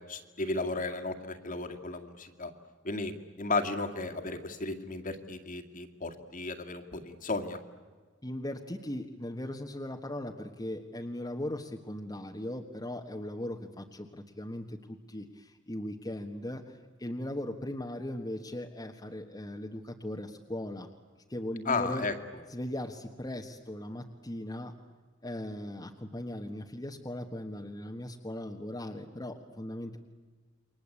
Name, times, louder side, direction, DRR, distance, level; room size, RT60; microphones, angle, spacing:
voice 1, 0.1-2.5 2.8-7.6 21.7-22.1, left 3 dB, 45° left, 6 dB, 2.2 m, -34 dB
voice 2, 8.2-20.9 21.3-22.0 22.5-24.7 25.2-30.0, left 1 dB, 20° left, 2 dB, 1.4 m, -38 dB
29.0 x 23.5 x 8.5 m, 1.4 s
head